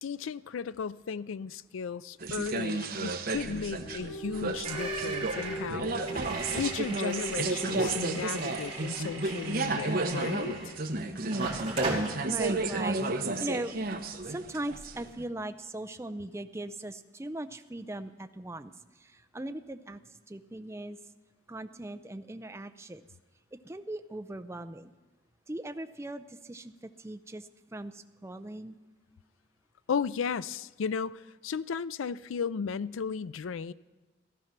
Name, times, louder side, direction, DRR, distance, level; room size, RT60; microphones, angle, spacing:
voice 1, 0.0-10.6 29.9-33.7, left 6 dB, 85° left, 0.4 m, -35 dB
sound 1, 2.2-15.2, right 3 dB, 50° right, 1.1 m, -32 dB
sound 2, 3.4-11.0, right 1 dB, 35° left, 6.5 m, -42 dB
sound 3, 4.6-10.9 11.3-12.1, right 3 dB, 30° right, 2.7 m, -38 dB
voice 2, 11.0-11.4 12.3-13.7 14.2-18.7 19.0-20.0 20.3-21.0 21.5-23.0 23.5-24.9 25.5-26.7 27.0-28.8, right 1 dB, 15° right, 0.5 m, -39 dB
15.5 x 14.0 x 5.9 m
head